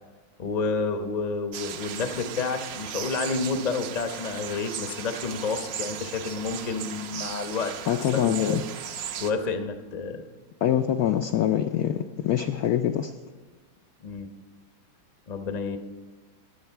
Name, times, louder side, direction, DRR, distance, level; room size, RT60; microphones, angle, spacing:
voice 1, 0.4-8.6 9.2-10.2 14.0-14.3 15.3-15.8, left 4 dB, 45° left, 7 dB, 0.5 m, -30 dB
sound 1, 1.5-9.3, right 9 dB, 70° right, 1.4 m, -37 dB
voice 2, 7.9-8.6 10.6-13.1, left 10 dB, 85° left, 6 dB, 0.8 m, -24 dB
22.0 x 8.1 x 4.5 m, 1.3 s
omnidirectional pair, 2.2 m